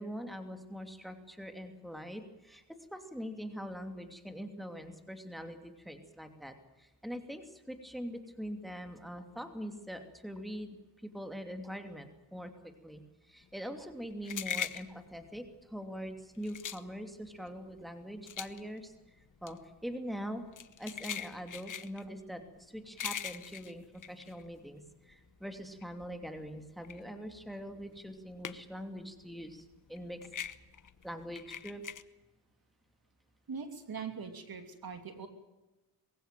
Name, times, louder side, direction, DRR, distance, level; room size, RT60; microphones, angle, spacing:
voice 1, 0.0-2.6 2.9-19.2 19.4-20.4 20.8-30.2 31.0-31.8, equal, ahead, 6 dB, 2.7 m, -43 dB
sound 1, 13.5-25.1 25.5-28.9 29.2-32.0, left 8 dB, 45° left, 1.1 m, -42 dB
voice 2, 33.5-35.3, right 5 dB, 55° right, 7 dB, 3.0 m, -41 dB
22.5 x 16.0 x 9.2 m, 1.0 s
cardioid pair, 80°, 42 cm